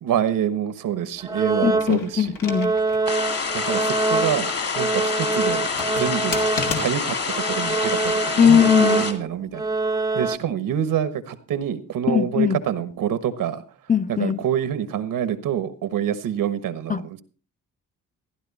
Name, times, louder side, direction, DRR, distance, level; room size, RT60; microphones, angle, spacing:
voice 1, 0.0-2.4 3.5-6.4 6.8-9.6 10.1-13.6 14.1-17.2, right 9 dB, 90° right, 1.3 m, -26 dB
sound 1, 1.2-2.2 2.5-7.0 7.3-10.4, right 3 dB, 10° right, 0.6 m, -25 dB
voice 2, 1.6-2.8 8.4-9.0 12.1-12.6 13.9-14.4 16.9-17.0, left 8 dB, 25° left, 0.7 m, -19 dB
sound 2, 1.7-3.1 3.5-3.6 5.5-7.3 8.1-8.6, left 5 dB, 85° left, 2.3 m, -33 dB
sound 3, 3.1-9.1, left 5 dB, 45° left, 2.5 m, -27 dB
14.5 x 11.0 x 4.2 m
cardioid pair, 95°, 33 cm